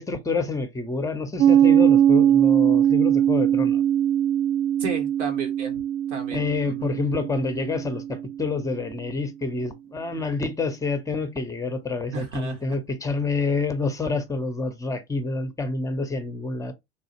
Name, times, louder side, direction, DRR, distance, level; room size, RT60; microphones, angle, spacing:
voice 1, 0.0-3.8 6.3-16.7, left 3 dB, 10° left, 0.7 m, -28 dB
Piano, 1.4-8.6, right 10 dB, 40° right, 0.4 m, -21 dB
voice 2, 4.8-5.8 6.1-6.9 12.1-12.6, right 4 dB, 80° right, 1.4 m, -33 dB
3.6 x 2.3 x 2.9 m
hypercardioid pair, 95°, 36 cm